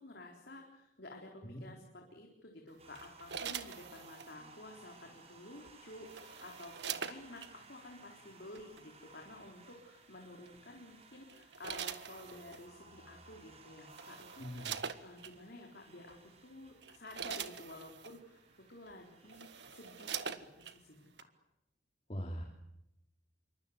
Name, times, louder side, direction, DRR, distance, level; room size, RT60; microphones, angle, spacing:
voice 1, 0.0-18.4 18.7-21.1, left 1 dB, 60° left, 1 dB, 4.1 m, -52 dB
sound 1, 2.8-20.2, right 3 dB, 35° right, 5.5 m, -60 dB
sound 2, 2.9-4.3 5.6-7.5 8.5-8.8 10.5-10.8 11.3-12.7 13.5-13.6 13.9-15.3 16.1-16.2 16.7-18.2 18.9-19.0 19.2-20.8 21.2-21.3, right 7 dB, 65° right, 1.6 m, -43 dB
voice 2, 14.4-14.7 22.1-22.4, equal, 35° left, 2 dB, 3.0 m, -41 dB
27.0 x 24.5 x 8.1 m, 0.87 s
head